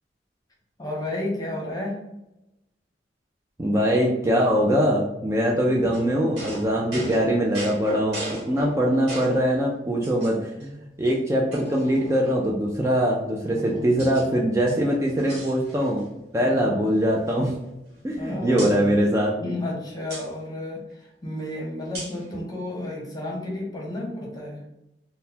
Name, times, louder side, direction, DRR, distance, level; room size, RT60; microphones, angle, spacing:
voice 1, 0.8-2.0 13.3-13.9 16.4-16.8 18.2-18.9 19.4-24.6, left 1 dB, 20° left, -1 dB, 0.8 m, -32 dB
voice 2, 3.6-8.2 8.5-16.1 16.3-17.5 18.0-19.3, equal, 15° right, -2 dB, 0.4 m, -22 dB
sound 1, 5.9-9.5 10.0-10.6 11.0-11.1 11.5-12.6 13.3-14.3 14.6-16.1 16.4-16.6 16.9-18.2 18.6-18.8 20.1-20.3 21.9-22.3, right 1 dB, 65° right, 1.3 m, -38 dB
3.8 x 2.1 x 2.8 m, 0.92 s
head